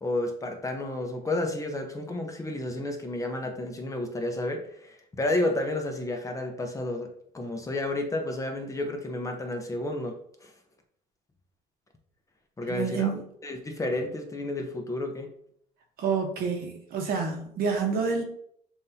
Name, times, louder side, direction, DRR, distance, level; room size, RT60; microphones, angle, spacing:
voice 1, 0.0-10.5 12.6-13.1 13.4-15.3, left 2 dB, 20° left, 4 dB, 0.7 m, -31 dB
voice 2, 12.7-13.2 16.0-18.2, right 5 dB, 65° right, 2 dB, 1.1 m, -28 dB
7.3 x 2.6 x 2.8 m, 0.67 s
cardioid pair, 110°, 17 cm